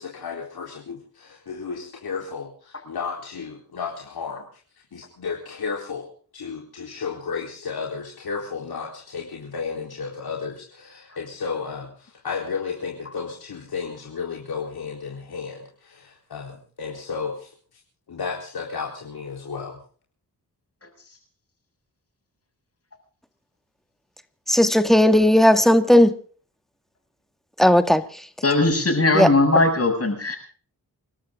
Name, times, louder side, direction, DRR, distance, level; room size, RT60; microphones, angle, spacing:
voice 1, 0.0-4.4 4.9-6.1 6.3-17.5 18.1-19.8, left 5 dB, 70° left, 4.1 m, -33 dB
voice 2, 24.5-26.1 27.6-28.0 29.1-29.3, left 1 dB, ahead, 2.0 m, -15 dB
voice 3, 28.4-30.4, left 2 dB, 40° left, 7.6 m, -19 dB
29.5 x 12.5 x 3.8 m
cardioid pair, 70°, 38 cm